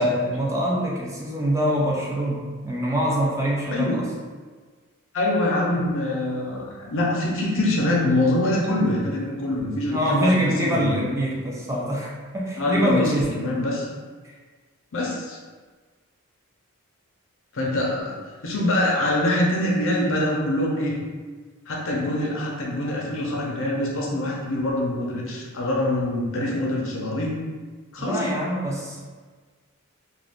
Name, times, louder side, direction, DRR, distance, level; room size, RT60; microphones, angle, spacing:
voice 1, 0.0-4.1 5.8-5.9 9.9-13.4 14.2-14.3 28.0-29.0, equal, 15° right, -4 dB, 0.4 m, -24 dB
voice 2, 5.1-6.6 6.9-11.1 12.6-13.9 14.9-15.4 17.5-18.1 18.4-20.9 21.7-27.4 27.9-28.3, left 1 dB, 60° left, -2 dB, 0.6 m, -24 dB
2.4 x 2.3 x 3.5 m, 1.4 s
head